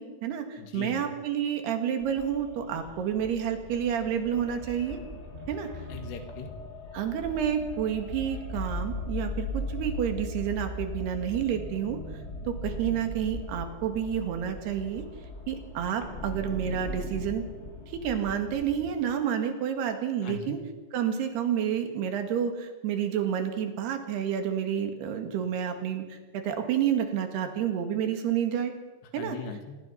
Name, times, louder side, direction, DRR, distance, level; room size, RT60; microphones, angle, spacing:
voice 1, 0.0-5.0 5.5-5.7 6.9-12.0 12.5-15.1 15.5-17.4 17.9-20.6 20.9-28.7 29.1-29.4, right 9 dB, 75° right, 6 dB, 3.9 m, -29 dB
voice 2, 0.6-1.0 5.9-6.5 20.2-20.6 29.2-29.8, left 5 dB, 80° left, 6 dB, 4.1 m, -39 dB
sound 1, 2.0-18.9, left 1 dB, 20° left, 2.2 m, -38 dB
26.0 x 19.5 x 5.7 m, 1.3 s
omnidirectional pair, 4.8 m